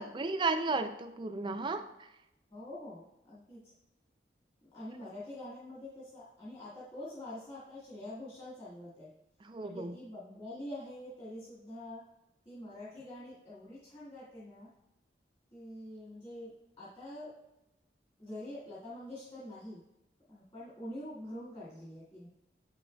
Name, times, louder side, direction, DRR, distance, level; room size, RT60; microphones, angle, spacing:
voice 1, 0.0-1.8 9.4-9.9, right 3 dB, 25° right, 8 dB, 0.4 m, -33 dB
voice 2, 2.5-3.7 4.6-9.1 9.6-12.0 12.5-14.7 15.5-17.3 18.2-19.8 20.3-22.3, left 1 dB, 30° left, -9 dB, 1.9 m, -45 dB
8.1 x 6.3 x 2.3 m, 0.89 s
head